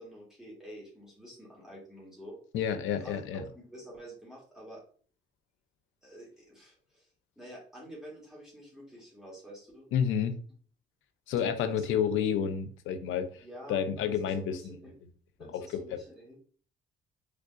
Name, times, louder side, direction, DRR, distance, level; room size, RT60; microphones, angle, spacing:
voice 1, 0.0-2.4 3.0-4.8 6.0-7.1 7.4-9.9 11.5-11.9 13.4-15.0 15.4-16.4, right 1 dB, 5° right, 1.8 m, -48 dB
voice 2, 2.5-3.4 9.9-10.4 11.3-13.4 13.7-14.8 15.5-15.6 15.9-16.0, left 8 dB, 85° left, 0.5 m, -30 dB
3.5 x 3.3 x 2.4 m
cardioid pair, 90°, 20 cm